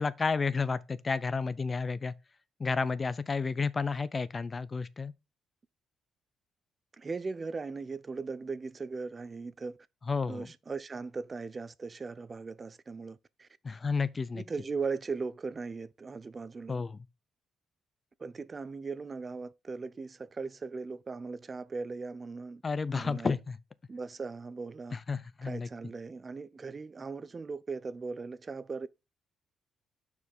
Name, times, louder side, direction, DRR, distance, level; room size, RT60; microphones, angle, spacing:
voice 1, 0.0-2.1 2.6-5.1 10.1-10.5 13.6-14.4 16.7-17.0 22.6-23.6 24.9-25.7, left 4 dB, 30° left, 0.5 m, -31 dB
voice 2, 7.0-9.8 10.3-13.5 14.3-16.8 18.2-22.6 22.9-23.3 23.9-25.0 25.4-28.9, right 4 dB, 30° right, 0.5 m, -38 dB
6.2 x 4.8 x 5.4 m
cardioid pair, 90°, 0 cm